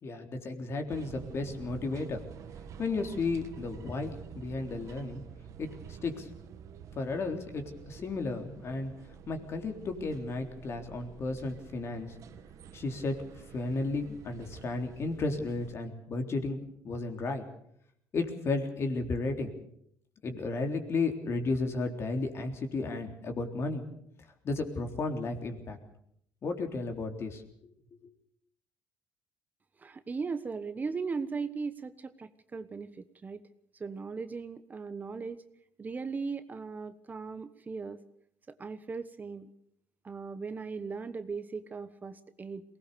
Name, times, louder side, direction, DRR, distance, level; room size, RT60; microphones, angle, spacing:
voice 1, 0.0-2.2 2.8-5.2 5.6-6.3 7.0-8.9 9.3-12.2 12.7-13.3 13.5-17.5 18.1-19.5 20.2-23.8 24.4-25.8 26.4-27.4 28.0-28.1, left 3 dB, 45° left, 5 dB, 3.6 m, -33 dB
sound 1, 0.9-15.8, right 7 dB, 60° right, 1.7 m, -49 dB
voice 2, 29.8-33.4 33.7-35.4 35.8-38.0 38.5-39.5 40.0-42.6, right 4 dB, 30° right, 12 dB, 1.1 m, -38 dB
22.5 x 19.0 x 6.9 m, 0.71 s
cardioid pair, 95°, 6 cm